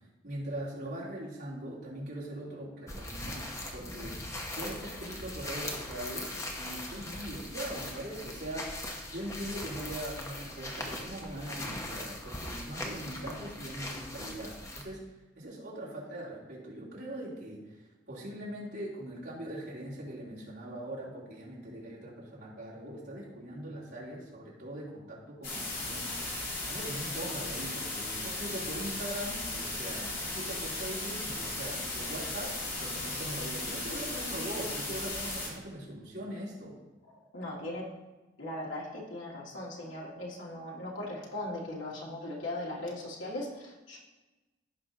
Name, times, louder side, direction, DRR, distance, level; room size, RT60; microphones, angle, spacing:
voice 1, 0.2-4.2 4.5-8.8 9.1-15.1 15.4-17.7 18.1-26.2 26.7-36.8, right 1 dB, 60° right, -7 dB, 3.3 m, -41 dB
sound 1, 2.9-14.8, left 1 dB, 15° left, 0.9 m, -40 dB
sound 2, 25.4-35.5, left 2 dB, 50° left, 2.8 m, -36 dB
voice 2, 37.3-37.9 38.4-44.0, left 1 dB, 80° left, -4 dB, 2.2 m, -38 dB
16.0 x 5.4 x 2.9 m, 1.1 s
head